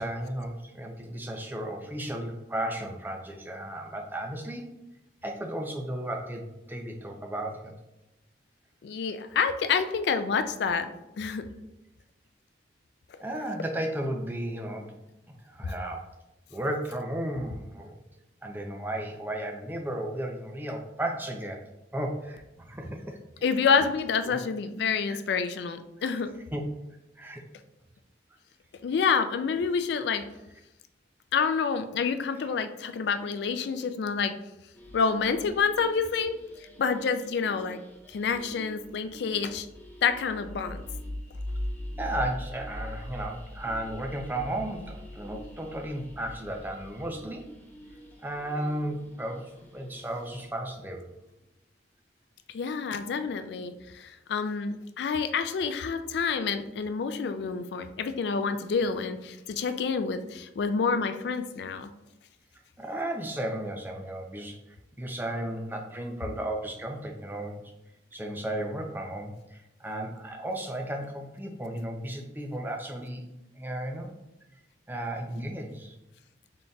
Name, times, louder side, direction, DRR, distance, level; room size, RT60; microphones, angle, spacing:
voice 1, 0.0-4.6 5.2-7.7 13.2-14.9 15.3-16.1 16.5-18.0 18.4-21.6 21.9-23.5 24.3-24.4 25.1-25.2 26.5-26.6 27.2-27.4 42.0-47.4 48.2-51.1 62.8-67.6 68.1-73.2 73.6-74.1 74.9-75.9, right 1 dB, 10° right, 2 dB, 0.4 m, -34 dB
voice 2, 8.8-10.9 11.2-11.4 15.6-15.7 23.4-26.3 28.8-30.2 31.3-34.3 34.9-36.3 36.8-37.8 38.1-39.7 40.0-40.8 52.5-61.9, left 5 dB, 65° left, 10 dB, 0.3 m, -28 dB
sound 1, 34.7-50.7, left 1 dB, 10° left, 0.8 m, -42 dB
3.8 x 3.8 x 2.3 m, 0.95 s
head